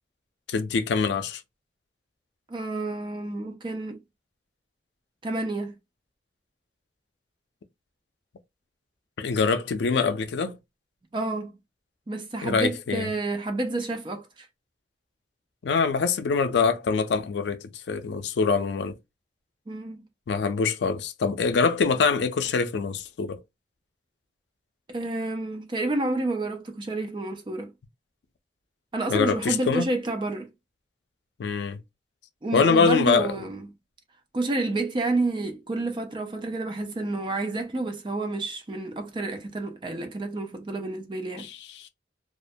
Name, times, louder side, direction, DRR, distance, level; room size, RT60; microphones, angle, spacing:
voice 1, 0.5-1.4 9.2-10.6 12.4-13.1 15.6-18.9 20.3-23.4 29.1-29.9 31.4-31.8 32.5-33.4 41.4-41.9, left 5 dB, 80° left, 0.4 m, -24 dB
voice 2, 2.5-4.0 5.2-5.8 11.1-11.6 12.1-14.3 19.7-20.0 24.9-27.7 28.9-30.5 32.4-33.6 34.3-41.5, right 2 dB, 25° right, 0.4 m, -29 dB
2.4 x 2.1 x 2.6 m
head